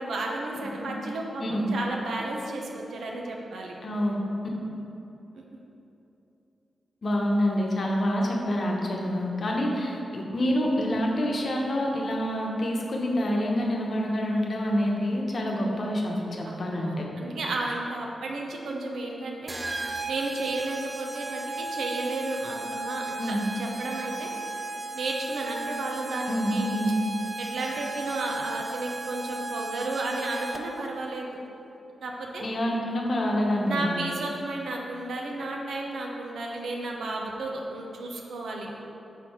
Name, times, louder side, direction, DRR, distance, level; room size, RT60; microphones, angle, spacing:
voice 1, 0.0-3.7 5.3-5.4 15.5-16.0 16.4-19.5 20.1-24.3 24.9-26.7 27.4-31.3 32.0-32.5 33.6-38.7, right 2 dB, 85° right, 0 dB, 0.7 m, -33 dB
voice 2, 3.8-4.2 7.0-17.1 23.2-23.4 26.3-26.9 32.4-34.0, equal, 55° left, -1 dB, 0.9 m, -27 dB
sound 1, 19.5-30.9, right 2 dB, 25° right, 0.3 m, -35 dB
4.5 x 4.0 x 5.6 m, 2.9 s
cardioid pair, 90°, 0 cm